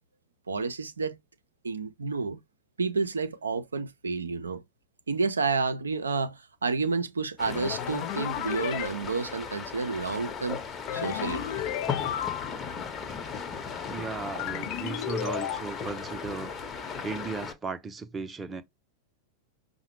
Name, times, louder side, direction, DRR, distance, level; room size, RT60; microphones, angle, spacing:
voice 1, 0.5-1.2 1.6-2.4 2.8-4.6 5.1-10.6 10.9-11.6, right 4 dB, 75° right, 0.5 m, -30 dB
sound 1, 7.4-17.5, left 6 dB, 20° left, 0.9 m, -37 dB
sound 2, 7.5-8.9 10.9-12.7 14.4-15.6, left 12 dB, 45° left, 0.5 m, -33 dB
voice 2, 13.9-16.5 17.0-18.6, right 4 dB, 15° right, 0.6 m, -36 dB
5.6 x 2.1 x 3.0 m
figure-of-eight pair, 90°, 0 cm